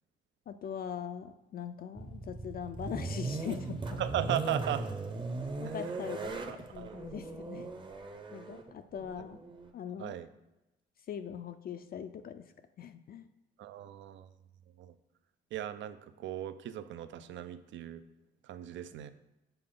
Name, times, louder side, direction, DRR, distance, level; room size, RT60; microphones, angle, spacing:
voice 1, 0.5-4.0 5.6-6.4 6.7-7.7 8.3-9.4 9.7-10.1 11.1-12.5 12.8-13.3, left 8 dB, 50° left, 9 dB, 0.4 m, -41 dB
sound 1, 1.9-9.7, right 3 dB, 25° right, 0.7 m, -38 dB
voice 2, 4.0-4.9 5.6-5.7 6.0-6.1 6.4-7.0 10.0-10.3 13.6-14.3 14.8-14.9 15.5-18.0 18.5-19.1, right 11 dB, 70° right, 12 dB, 0.5 m, -37 dB
6.8 x 3.9 x 3.8 m, 0.96 s
cardioid pair, 90°, 20 cm